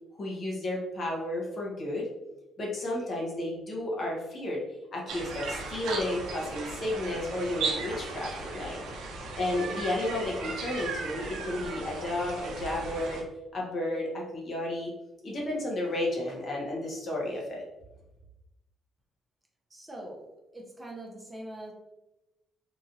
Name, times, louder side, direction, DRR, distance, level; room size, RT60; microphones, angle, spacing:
voice 1, 0.1-2.1 2.6-4.6 4.9-8.8 9.3-13.2 13.5-14.9 15.2-17.6, left 1 dB, 50° left, -2 dB, 1.0 m, -32 dB
sound 1, 5.1-13.2, right 3 dB, 85° right, 0.6 m, -36 dB
voice 2, 19.7-21.7, right 1 dB, 15° right, -1 dB, 0.6 m, -43 dB
3.0 x 2.4 x 2.6 m, 0.97 s
cardioid pair, 90°, 0 cm